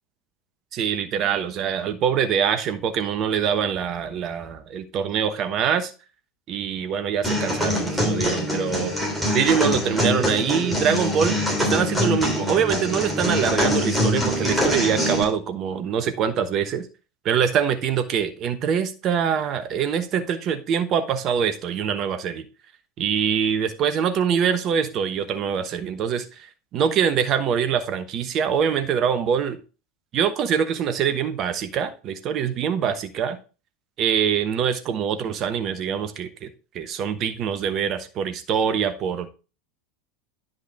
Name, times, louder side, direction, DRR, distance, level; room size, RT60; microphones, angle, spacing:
voice 1, 0.7-5.9 6.5-8.9 9.3-16.9 17.2-22.4 23.0-26.5 26.7-29.6 30.1-33.4 34.0-39.3, right 7 dB, 40° right, 1.1 m, -24 dB
sound 1, 7.2-15.2, left 1 dB, 5° left, 3.3 m, -24 dB
10.0 x 5.5 x 3.5 m
figure-of-eight pair, 80°, 0 cm